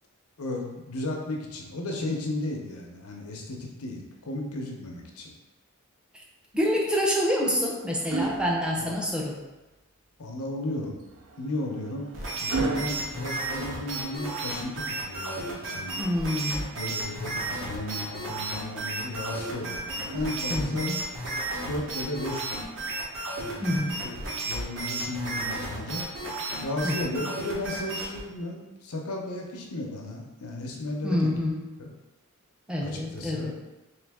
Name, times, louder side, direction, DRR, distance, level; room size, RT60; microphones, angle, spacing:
voice 1, 0.4-5.3 8.8-8.9 10.2-11.0 11.4-12.1 12.4-16.1 16.7-20.9 21.6-22.7 23.3-26.0 26.6-31.3 31.8-31.9 32.8-33.5, left 1 dB, 85° left, 0 dB, 0.7 m, -34 dB
voice 2, 6.5-9.4 16.0-16.7 20.5-20.9 23.6-24.0 26.8-27.0 31.0-31.6 32.7-33.5, left 1 dB, 5° right, -2 dB, 0.5 m, -27 dB
sound 1, 7.0-9.4 11.0-14.2 16.0-17.1 19.1-20.9 22.2-22.4, right 3 dB, 80° right, 0.5 m, -37 dB
sound 2, 12.1-28.2, right 2 dB, 60° right, 0.9 m, -33 dB
3.8 x 2.9 x 3.5 m, 1.1 s
head